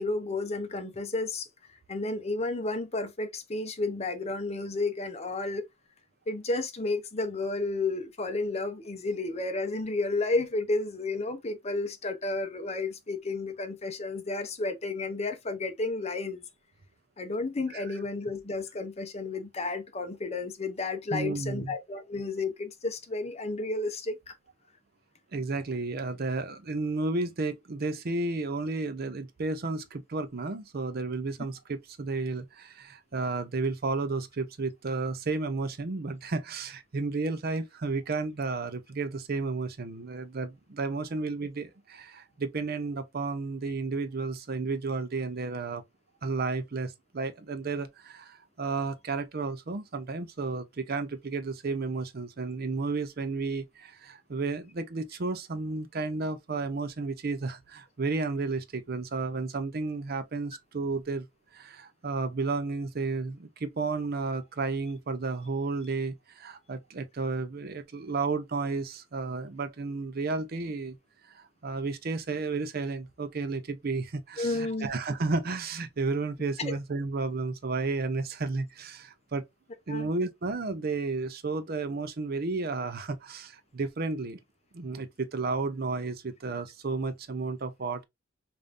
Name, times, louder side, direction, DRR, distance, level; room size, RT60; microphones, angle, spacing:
voice 1, 0.0-1.5 1.9-5.7 6.3-16.4 17.2-24.4 74.4-74.9 76.6-76.7 79.9-80.1, left 3 dB, 30° left, 0.6 m, -32 dB
voice 2, 21.1-21.7 25.3-45.8 46.2-61.3 61.5-71.0 71.3-79.4 79.9-84.4 84.7-88.0, right 3 dB, 50° right, 0.6 m, -32 dB
5.1 x 2.6 x 2.5 m
head